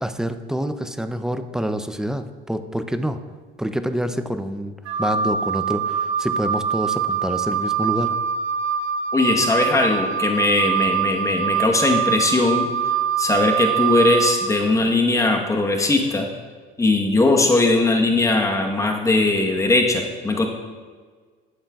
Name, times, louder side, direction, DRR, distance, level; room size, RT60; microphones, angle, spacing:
voice 1, 0.0-3.2 3.6-8.2, right 1 dB, 5° right, 9 dB, 0.4 m, -27 dB
Wind instrument woodwind instrument, 4.8-14.5, right 7 dB, 75° right, 1.5 m, -24 dB
voice 2, 9.1-12.7 13.2-16.3 16.8-20.5, left 2 dB, 15° left, 2 dB, 1.0 m, -19 dB
13.5 x 8.6 x 2.3 m, 1.5 s
cardioid pair, 120°, 18 cm